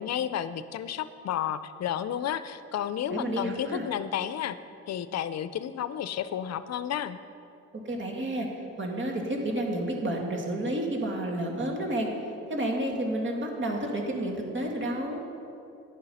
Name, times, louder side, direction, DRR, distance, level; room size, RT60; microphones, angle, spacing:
voice 1, 0.0-4.6 4.9-7.2, left 10 dB, 60° left, 13 dB, 0.6 m, -32 dB
voice 2, 3.1-3.8 7.9-8.5 8.8-12.1 12.5-15.2, right 1 dB, 40° right, 1 dB, 2.1 m, -30 dB
11.0 x 8.9 x 5.6 m, 2.7 s
cardioid pair, 90°, 30 cm